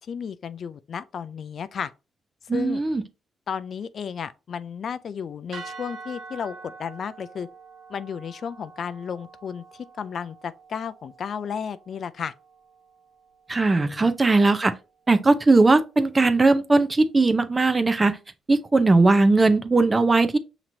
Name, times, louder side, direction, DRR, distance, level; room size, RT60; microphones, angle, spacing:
voice 1, 0.1-1.9 2.5-2.8 3.5-7.5 7.9-12.3 13.8-14.1, left 7 dB, 55° left, 0.3 m, -33 dB
voice 2, 2.5-3.0 13.5-14.7 15.1-18.2 18.5-20.4, right 3 dB, 25° right, 0.5 m, -19 dB
sound 1, 5.5-13.8, right 4 dB, 70° right, 0.9 m, -45 dB
5.8 x 2.9 x 2.6 m
cardioid pair, 90°, 0 cm